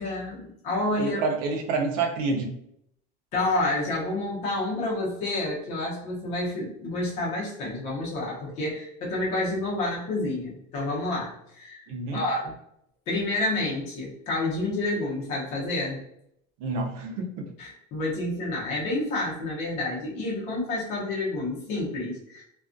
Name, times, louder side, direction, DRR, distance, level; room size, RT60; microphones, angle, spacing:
voice 1, 0.0-1.2 3.3-11.8 12.1-12.5 13.1-16.0 17.6-22.4, left 2 dB, 35° left, -5 dB, 0.8 m, -29 dB
voice 2, 1.0-2.6 11.9-12.2 16.6-17.5, right 3 dB, 70° right, 1 dB, 0.6 m, -28 dB
2.3 x 2.3 x 2.5 m, 0.73 s
cardioid pair, 180°, 20 cm